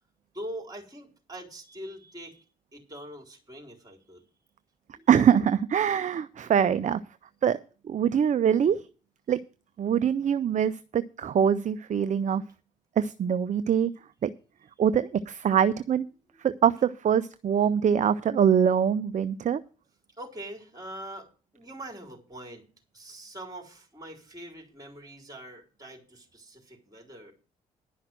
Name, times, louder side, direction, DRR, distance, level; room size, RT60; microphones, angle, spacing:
voice 1, 0.3-2.4 2.7-4.2 4.9-5.1 15.4-15.5 20.2-22.6 22.9-27.3, right 1 dB, 20° right, 0 dB, 4.1 m, -43 dB
voice 2, 5.1-7.0 7.4-7.6 7.8-8.8 9.3-9.4 9.8-12.4 13.0-13.9 14.2-14.3 14.8-16.0 16.4-19.6, right 8 dB, 40° right, 14 dB, 0.6 m, -23 dB
11.0 x 5.7 x 7.7 m, 0.37 s
hypercardioid pair, 45°, 18 cm